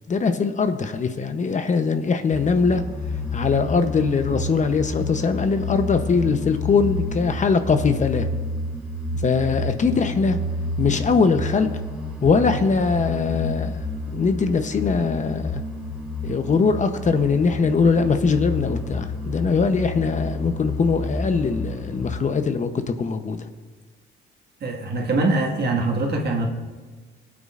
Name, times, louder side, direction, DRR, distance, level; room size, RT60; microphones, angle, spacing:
voice 1, 0.1-2.8 3.3-8.3 9.2-10.4 10.8-11.7 12.2-13.7 14.1-15.6 16.2-22.7 23.0-23.4, left 5 dB, 40° left, 8 dB, 0.8 m, -21 dB
sound 1, 2.3-22.2, left 2 dB, 5° right, 2.6 m, -30 dB
voice 2, 24.6-26.5, right 2 dB, 55° right, 1 dB, 1.8 m, -23 dB
19.5 x 8.5 x 2.5 m, 1.4 s
cardioid pair, 90°, 20 cm